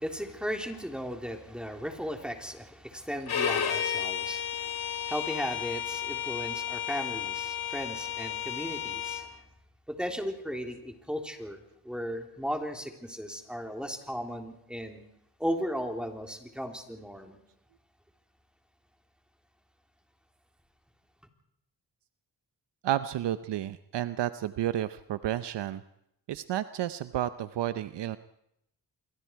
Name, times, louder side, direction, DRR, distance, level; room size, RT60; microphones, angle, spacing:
voice 1, 0.0-9.4 9.9-11.6 11.8-15.0 15.4-17.4, equal, ahead, 3 dB, 3.7 m, -36 dB
Bowed string instrument, 3.3-9.2, left 9 dB, 65° left, 3.0 m, -32 dB
voice 2, 22.8-25.8 26.3-28.2, right 12 dB, 80° right, 12 dB, 0.8 m, -31 dB
27.0 x 23.5 x 4.7 m, 0.78 s
cardioid pair, 80°, 41 cm